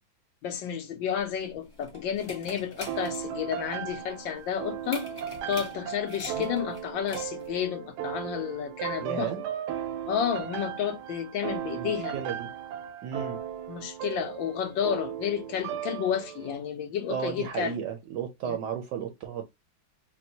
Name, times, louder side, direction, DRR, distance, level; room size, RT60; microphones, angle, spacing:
voice 1, 0.4-5.1 5.5-9.3 10.1-12.2 13.7-17.8 18.4-18.6, left 8 dB, 70° left, 1.3 m, -31 dB
sound 1, 1.2-7.6, left 1 dB, 25° left, 0.7 m, -44 dB
sound 2, 2.9-16.6, right 10 dB, 85° right, 1.5 m, -36 dB
voice 2, 9.0-9.4 11.7-12.5 13.0-13.4 17.1-19.4, right 8 dB, 70° right, 1.1 m, -34 dB
4.4 x 2.2 x 2.7 m
omnidirectional pair, 2.3 m